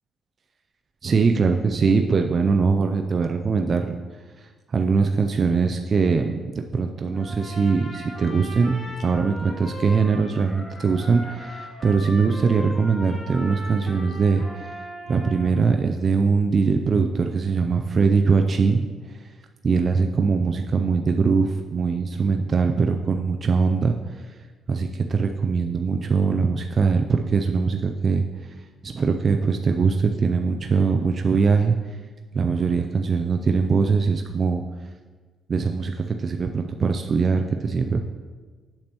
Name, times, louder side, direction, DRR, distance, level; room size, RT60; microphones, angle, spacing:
voice 1, 1.0-4.0 4.4-14.7 15.1-19.2 19.6-24.0 24.7-28.2 28.8-31.8 32.3-34.6 35.5-38.0, right 4 dB, 45° right, 4 dB, 0.4 m, -22 dB
Trumpet, 7.1-15.5, left 1 dB, 30° left, 2.0 m, -39 dB
8.6 x 6.8 x 3.0 m, 1.4 s
cardioid pair, 90°, 0 cm